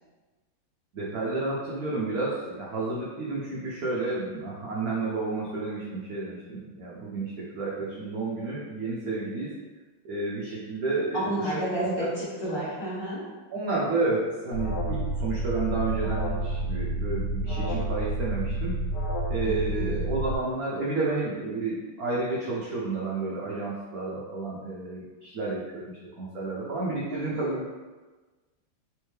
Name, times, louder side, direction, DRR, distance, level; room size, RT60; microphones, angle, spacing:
voice 1, 0.9-9.5 10.0-11.4 12.0-12.1 13.5-18.8 19.3-27.7, right 3 dB, 75° right, -6 dB, 0.8 m, -31 dB
voice 2, 11.1-13.2 19.4-20.0 27.1-27.5, equal, 40° left, -10 dB, 1.4 m, -31 dB
Alarm, 14.5-20.3, right 1 dB, 85° left, 1.6 m, -29 dB
3.5 x 3.3 x 3.1 m, 1.3 s
omnidirectional pair, 2.3 m